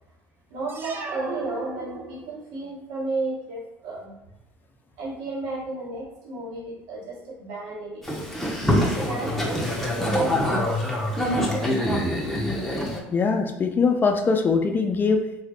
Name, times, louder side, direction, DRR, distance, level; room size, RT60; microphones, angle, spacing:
voice 1, 0.5-4.1 5.0-8.0 8.9-11.1, right 3 dB, 75° right, -7 dB, 1.2 m, -33 dB
sound 1, 0.7-2.5, right 3 dB, 35° right, 0.5 m, -36 dB
Boat Water vehicle, 8.0-13.0, left 1 dB, 5° left, 0.8 m, -25 dB
voice 2, 13.1-15.3, left 4 dB, 35° left, 5 dB, 0.5 m, -22 dB
2.8 x 2.3 x 3.4 m, 0.91 s
supercardioid pair, 75°, 6 cm